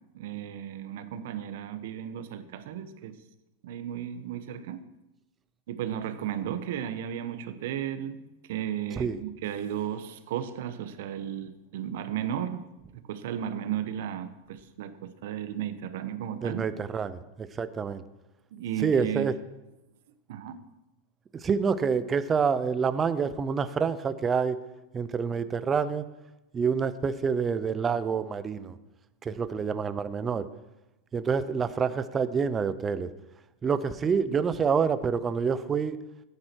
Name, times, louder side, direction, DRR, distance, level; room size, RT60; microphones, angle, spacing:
voice 1, 0.1-3.2 3.6-4.8 5.7-8.2 8.5-12.7 12.9-16.6 18.5-19.3 20.3-20.6, right 10 dB, 60° right, 10 dB, 1.1 m, -34 dB
voice 2, 16.4-18.0 18.8-19.4 21.3-24.6 24.9-26.1 26.5-28.8 29.2-30.5 31.1-33.1 33.6-36.0, right 6 dB, 15° right, 13 dB, 0.5 m, -27 dB
14.0 x 9.8 x 4.6 m, 0.97 s
supercardioid pair, 160°, 0 cm